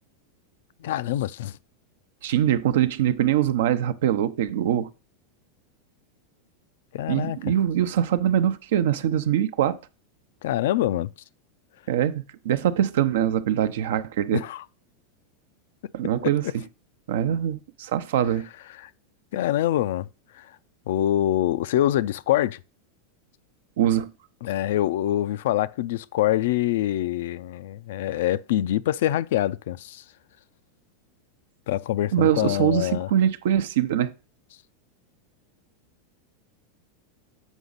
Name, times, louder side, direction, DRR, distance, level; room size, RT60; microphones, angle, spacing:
voice 1, 0.8-1.5 6.9-7.4 10.4-11.1 14.3-14.6 18.8-18.9 19.3-20.1 20.4-20.5 20.9-22.6 24.4-30.0 31.7-33.1, left 13 dB, 75° left, 0.4 m, -25 dB
voice 2, 2.2-4.9 7.1-9.8 11.9-14.4 15.9-16.6 17.1-18.5 23.8-24.1 32.1-34.1, right 10 dB, 75° right, 0.7 m, -23 dB
8.1 x 5.0 x 4.0 m
hypercardioid pair, 115°, 0 cm